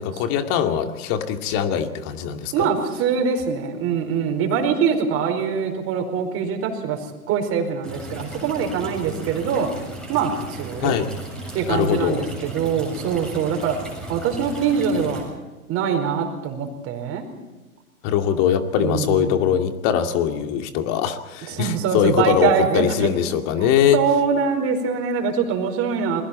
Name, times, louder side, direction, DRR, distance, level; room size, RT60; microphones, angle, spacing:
voice 1, 0.0-2.7 10.8-11.1 11.7-12.2 18.0-24.0, left 9 dB, 40° left, 6 dB, 2.5 m, -22 dB
voice 2, 2.5-7.0 7.3-9.7 10.1-11.0 11.5-13.8 14.1-15.3 15.7-17.3 18.7-19.6 21.5-22.9 23.9-26.2, right 6 dB, 30° right, 4 dB, 4.9 m, -23 dB
sound 1, 7.8-15.2, right 1 dB, ahead, 7.2 m, -36 dB
28.0 x 21.5 x 4.4 m, 1.1 s
hypercardioid pair, 120°, 44 cm